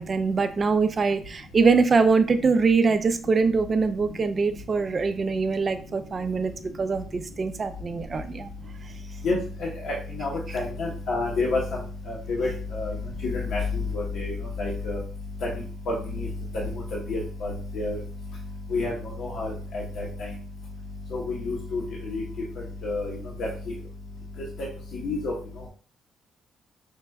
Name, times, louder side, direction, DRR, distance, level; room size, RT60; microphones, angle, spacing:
voice 1, 0.0-6.5 6.8-8.5 10.5-10.6, right 4 dB, 40° right, 9 dB, 0.5 m, -23 dB
voice 2, 9.8-11.6 12.1-12.9 13.3-13.6 13.9-15.0 15.9-16.3 17.1-18.0 18.7-18.9 19.2-20.1 21.1-22.2 22.8-23.5 25.0-25.3, left 3 dB, 70° left, -3 dB, 0.9 m, -29 dB
4.9 x 3.3 x 2.2 m, 0.40 s
cardioid pair, 90°, 0 cm